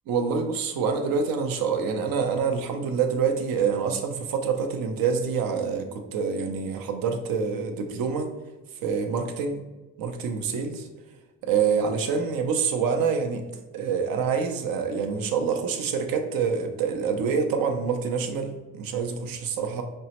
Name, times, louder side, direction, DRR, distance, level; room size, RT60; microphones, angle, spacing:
voice 1, 0.1-8.3 8.8-9.6 10.0-10.9 11.4-13.4 13.7-19.8, right 6 dB, 80° right, 5 dB, 0.6 m, -26 dB
5.2 x 2.1 x 2.9 m, 1.2 s
cardioid pair, 65°, 34 cm